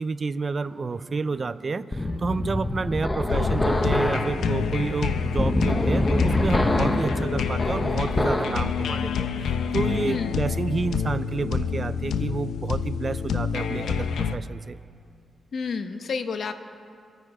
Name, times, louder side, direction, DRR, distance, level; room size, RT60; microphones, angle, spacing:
voice 1, 0.0-14.8, right 4 dB, 40° right, 14 dB, 0.4 m, -30 dB
sound 1, 0.6-10.4, right 1 dB, 10° right, 1.2 m, -47 dB
sound 2, 1.9-8.7, left 1 dB, 20° left, 0.8 m, -25 dB
sound 3, 3.3-14.3, left 7 dB, 85° left, 0.7 m, -28 dB
voice 2, 10.0-10.4 15.5-16.5, left 5 dB, 60° left, 8 dB, 1.0 m, -30 dB
25.0 x 9.2 x 4.9 m, 2.3 s
cardioid pair, 110°, 0 cm